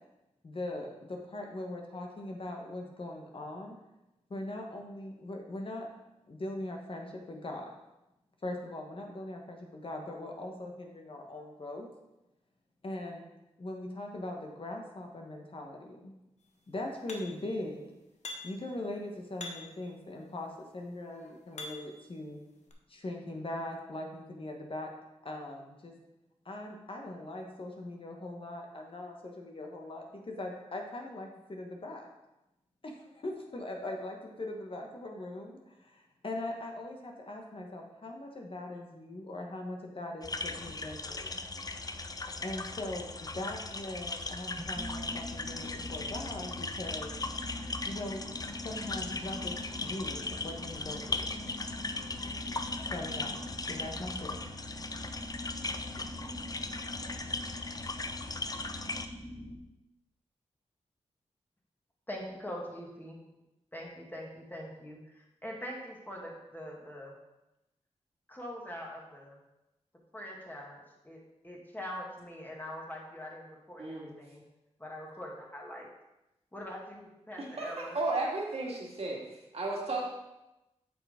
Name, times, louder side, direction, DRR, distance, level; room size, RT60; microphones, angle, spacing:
voice 1, 0.4-3.8 4.3-5.9 6.3-7.7 8.4-11.9 12.8-13.2 13.6-16.1 16.7-17.8 18.4-22.4 22.9-24.9 25.2-25.9 26.4-32.1 32.8-41.4 42.4-47.1 47.8-51.3 52.9-53.4 53.7-54.4, left 1 dB, 50° left, 1 dB, 1.2 m, -40 dB
sound 1, 17.1-17.5 18.2-18.7 19.4-19.9 20.7-22.0 22.7-22.8, left 3 dB, 75° left, 1.0 m, -44 dB
sound 2, 40.2-59.1, left 3 dB, 30° left, 0.6 m, -38 dB
sound 3, 44.6-59.5, left 1 dB, 10° right, 1.4 m, -45 dB
voice 2, 62.1-63.2 63.7-67.2 68.3-69.4 70.1-74.4 74.8-75.9 76.5-78.0, equal, 15° left, -2 dB, 2.1 m, -43 dB
voice 3, 73.8-74.1 77.6-79.2 79.5-80.0, right 2 dB, 60° right, -3 dB, 2.0 m, -33 dB
7.8 x 6.2 x 3.6 m, 0.95 s
cardioid pair, 60°, 12 cm